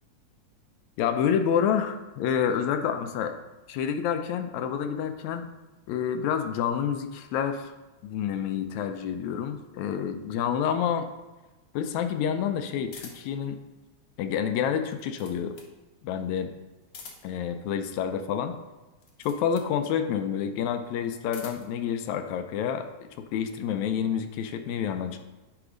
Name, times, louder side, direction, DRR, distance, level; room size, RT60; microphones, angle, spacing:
voice 1, 1.0-3.4 3.7-5.5 5.9-7.7 8.0-11.1 11.7-13.6 14.2-15.6 16.0-16.5 17.2-18.6 19.2-25.2, left 8 dB, 80° left, 8 dB, 1.9 m, -28 dB
sound 1, 12.9-13.4 14.7-15.8 16.8-17.5 18.9-19.7 21.0-21.8, left 4 dB, 60° left, 1.5 m, -47 dB
9.8 x 3.5 x 5.0 m, 1.1 s
omnidirectional pair, 3.4 m